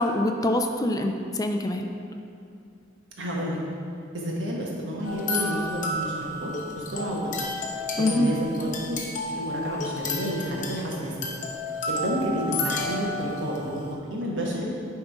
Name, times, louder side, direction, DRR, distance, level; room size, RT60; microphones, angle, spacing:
voice 1, 0.0-1.9 8.0-8.3, left 1 dB, 20° left, 4 dB, 0.4 m, -25 dB
voice 2, 3.2-3.6 4.1-7.3 7.7-9.0 9.3-11.3 11.9-13.8 14.1-14.7, equal, 80° right, -3 dB, 1.4 m, -30 dB
sound 1, 5.0-13.9, left 2 dB, 45° left, 0.9 m, -32 dB
10.0 x 3.7 x 4.8 m, 2.4 s
head